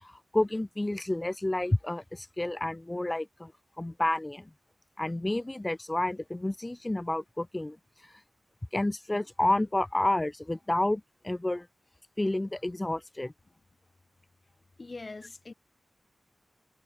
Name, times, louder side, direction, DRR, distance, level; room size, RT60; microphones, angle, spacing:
voice 1, 0.0-3.5 3.8-4.5 5.0-7.8 8.7-11.7 12.2-13.3, left 1 dB, 20° left, 0.6 m, -30 dB
voice 2, 14.8-15.5, left 3 dB, 40° left, 1.1 m, -42 dB
wide cardioid pair, 70°, 0 cm